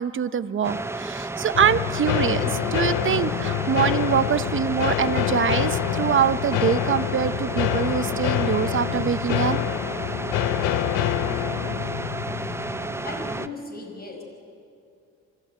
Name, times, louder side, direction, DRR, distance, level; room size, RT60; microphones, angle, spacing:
voice 1, 0.0-9.6, right 8 dB, 40° right, 15 dB, 0.8 m, -24 dB
sound 1, 0.6-13.5, right 2 dB, 10° right, 0.6 m, -32 dB
sound 2, 1.5-13.5, left 15 dB, 85° left, 0.5 m, -27 dB
voice 2, 13.0-14.2, left 2 dB, 30° left, 1 dB, 5.6 m, -37 dB
24.0 x 14.0 x 9.0 m, 2.4 s
cardioid pair, 90°, 30 cm